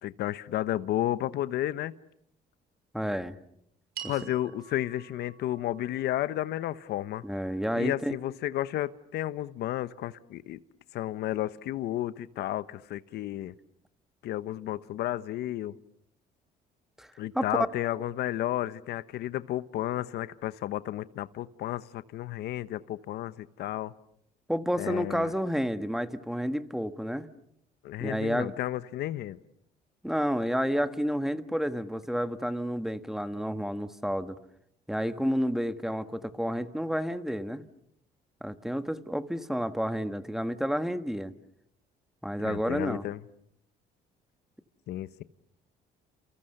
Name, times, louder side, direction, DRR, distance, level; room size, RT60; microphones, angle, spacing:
voice 1, 0.0-1.9 4.1-7.2 7.7-10.6 10.9-13.5 14.2-15.7 17.2-23.9 24.8-25.3 27.8-29.4 42.4-43.2 44.9-45.2, left 13 dB, 75° left, 14 dB, 1.0 m, -32 dB
voice 2, 2.9-3.4 4.0-4.3 7.2-8.2 17.0-17.5 24.5-27.3 28.0-28.5 30.0-34.4 34.9-37.6 38.4-41.3 42.2-43.0, equal, ahead, 10 dB, 1.4 m, -30 dB
sound 1, 3.9-8.4, right 9 dB, 65° right, 7.0 m, -48 dB
30.0 x 28.5 x 6.7 m, 0.73 s
cardioid pair, 110°, 17 cm